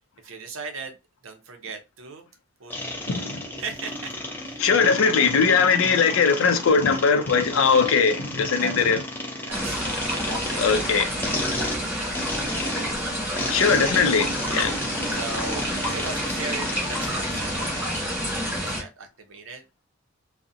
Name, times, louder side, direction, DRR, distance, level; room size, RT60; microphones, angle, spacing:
voice 1, 0.2-1.0 1.2-2.3 2.6-2.7 3.0-3.2 3.6-4.7 8.6-8.7 9.4-9.8 10.2-12.1 12.4-12.9 15.1-17.8 18.1-19.6, right 4 dB, 70° right, 0.6 m, -38 dB
sound 1, 2.7-18.1, left 1 dB, 10° left, 0.4 m, -33 dB
voice 2, 3.1-3.4 4.6-9.0 10.6-11.1 13.5-14.8, left 5 dB, 75° left, 0.4 m, -20 dB
sound 2, 9.5-18.8, equal, 10° right, 0.9 m, -29 dB
2.4 x 2.0 x 2.6 m
head